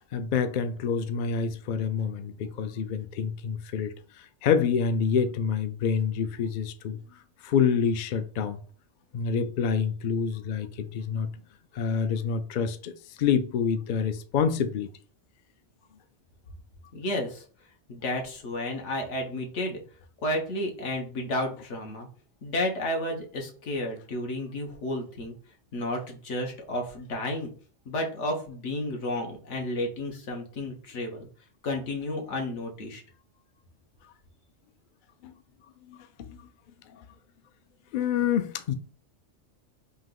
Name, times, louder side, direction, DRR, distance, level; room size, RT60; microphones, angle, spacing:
voice 1, 0.1-7.0 7.4-8.6 9.1-11.3 11.7-12.9 13.2-14.9 35.2-35.3 35.8-36.4 36.9-37.0 37.9-38.7, left 6 dB, 60° left, 0.5 m, -27 dB
voice 2, 16.9-17.4 17.9-19.8 20.2-22.1 22.4-25.3 25.7-27.5 27.8-31.2 31.6-33.0, left 1 dB, 75° left, 1.3 m, -32 dB
3.6 x 2.8 x 3.7 m
omnidirectional pair, 1.2 m